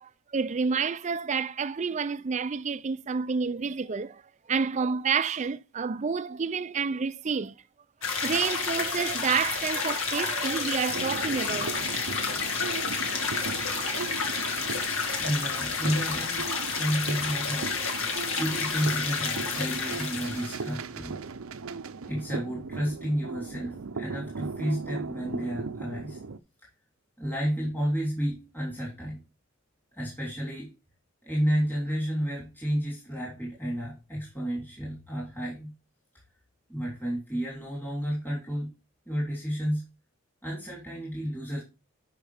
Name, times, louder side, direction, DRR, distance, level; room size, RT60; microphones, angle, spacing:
voice 1, 0.0-4.2 4.5-7.5 8.1-11.9, right 5 dB, 35° right, 0.4 m, -29 dB
sound 1, 8.0-20.7, left 5 dB, 70° left, 2.1 m, -30 dB
sound 2, 10.9-26.4, right 4 dB, 75° right, 0.6 m, -38 dB
voice 2, 15.2-16.5 16.7-17.7 18.0-21.2 22.1-26.2 27.2-29.2 29.9-30.7 31.2-35.7 36.7-38.7 39.1-39.8 40.4-41.6, equal, 10° left, 3.3 m, -31 dB
11.0 x 5.6 x 3.5 m
head